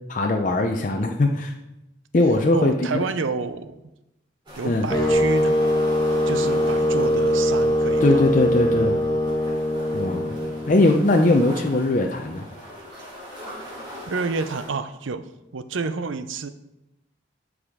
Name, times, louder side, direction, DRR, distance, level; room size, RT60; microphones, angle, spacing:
voice 1, 0.1-1.5 2.1-3.0 4.6-4.9 8.0-9.0 9.9-10.4 10.7-12.4, left 2 dB, 40° left, 3 dB, 0.6 m, -20 dB
voice 2, 2.5-3.8 4.5-5.6 6.3-8.3 10.4-10.5 13.6-13.7 14.1-15.3 15.5-16.5, right 4 dB, 85° right, 12 dB, 0.6 m, -29 dB
sound 1, 4.5-14.7, equal, 25° right, 3.2 m, -40 dB
sound 2, 4.9-11.0, equal, 20° left, 1.2 m, -22 dB
13.0 x 4.9 x 3.6 m, 0.90 s
head